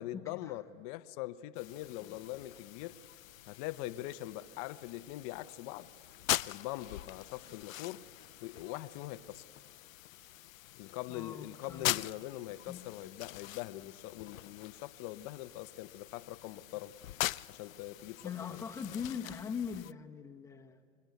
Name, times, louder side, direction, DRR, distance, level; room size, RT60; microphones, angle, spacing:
voice 1, 0.0-3.0 3.5-5.9 6.4-8.1 8.4-9.5 10.7-16.9 17.5-18.6, left 16 dB, 30° left, 0.6 m, -42 dB
sound 1, 1.5-19.9, left 15 dB, 85° left, 0.6 m, -42 dB
voice 2, 11.1-12.0 12.7-12.8 18.2-20.8, left 6 dB, 10° left, 0.9 m, -41 dB
25.5 x 21.0 x 9.2 m
hypercardioid pair, 145°, 39 cm